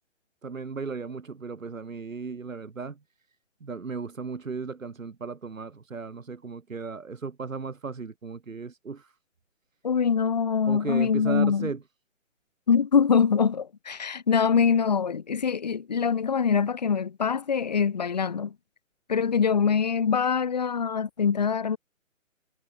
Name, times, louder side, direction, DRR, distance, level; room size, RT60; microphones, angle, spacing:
voice 1, 0.4-3.0 3.6-9.1 10.6-11.8, right 4 dB, 80° right, 4.7 m, -35 dB
voice 2, 9.8-11.7 12.7-18.5 19.1-21.8, left 6 dB, 30° left, 2.3 m, -24 dB
hypercardioid pair, 180°, 39 cm